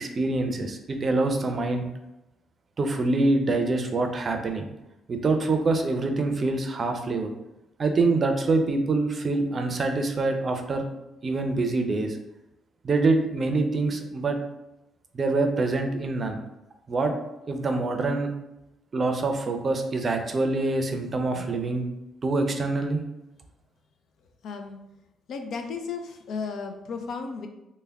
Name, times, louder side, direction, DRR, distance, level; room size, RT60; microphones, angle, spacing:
voice 1, 0.0-1.9 2.8-4.7 5.1-7.3 7.8-10.9 11.2-12.2 12.8-14.4 15.1-16.4 16.9-17.1 17.5-18.3 18.9-21.9 22.2-23.0, right 3 dB, 40° right, 5 dB, 0.5 m, -25 dB
voice 2, 24.4-24.8 25.3-27.5, left 5 dB, 70° left, 5 dB, 0.4 m, -34 dB
3.4 x 2.2 x 3.4 m, 0.93 s
cardioid pair, 90°, 0 cm